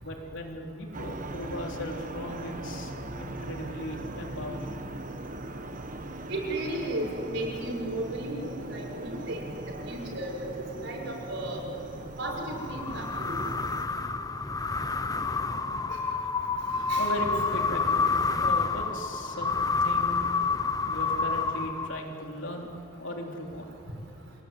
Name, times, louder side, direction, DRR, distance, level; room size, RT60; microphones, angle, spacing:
voice 1, 0.0-4.7 17.0-20.3 20.9-22.7 23.0-23.7, equal, 65° left, 1 dB, 3.6 m, -37 dB
sound 1, 0.9-13.8, right 1 dB, 40° right, 1.4 m, -39 dB
voice 2, 6.3-10.5 10.8-11.6 12.2-13.4 15.9-16.0 16.9-17.1, right 1 dB, 60° right, 0 dB, 6.1 m, -34 dB
sound 2, 12.5-22.2, left 4 dB, 15° left, 0.7 m, -28 dB
27.5 x 19.5 x 9.7 m, 2.9 s
head